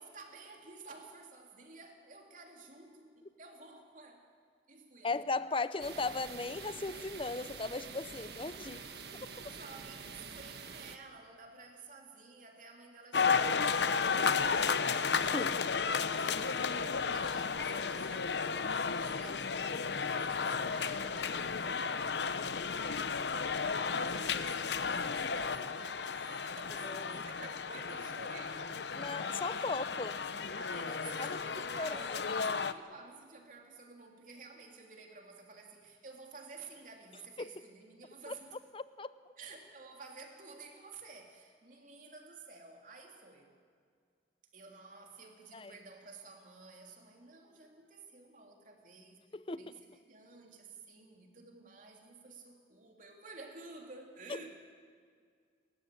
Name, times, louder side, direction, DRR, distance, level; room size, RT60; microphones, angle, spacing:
voice 1, 0.0-4.2 4.7-5.2 8.6-8.9 9.4-14.9 15.1-21.9 23.7-28.8 29.2-29.3 29.6-29.8 30.5-38.5 39.4-43.5 44.5-49.2 49.6-54.5, right 3 dB, 45° right, 3.3 m, -52 dB
voice 2, 5.0-8.8 9.2-9.3 15.3-15.6 26.8-27.2 28.9-30.1 30.4-31.4 31.8-32.1 37.4-37.5 38.3-38.4 38.7-39.2 45.5-45.7 49.3-49.8 54.3-54.4, left 3 dB, 30° left, 0.6 m, -37 dB
sound 1, 5.8-11.0, right 5 dB, 65° right, 1.6 m, -47 dB
sound 2, 13.1-32.7, left 5 dB, 75° left, 0.8 m, -33 dB
30.0 x 14.0 x 8.5 m
head